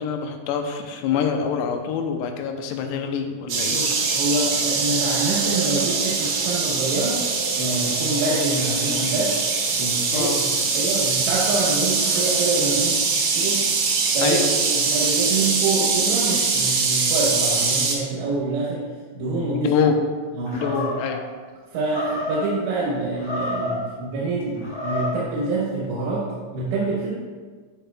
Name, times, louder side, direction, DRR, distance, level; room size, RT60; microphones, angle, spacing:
voice 1, 0.0-3.8 10.1-10.4 14.2-14.5 19.5-20.0 20.5-21.2, left 7 dB, 85° left, 4 dB, 2.7 m, -25 dB
sound 1, 3.5-18.0, right 4 dB, 70° right, 2.1 m, -22 dB
voice 2, 3.7-7.2 7.6-9.4 9.7-13.7 14.1-14.4 14.7-18.9 19.1-19.7 20.4-20.8 21.7-27.1, right 3 dB, 90° right, -6 dB, 3.4 m, -26 dB
Animal, 20.5-21.2 21.9-22.5 23.1-23.9 24.6-25.3, left 1 dB, 40° left, 2.1 m, -29 dB
13.5 x 4.9 x 2.2 m, 1.5 s
omnidirectional pair, 5.0 m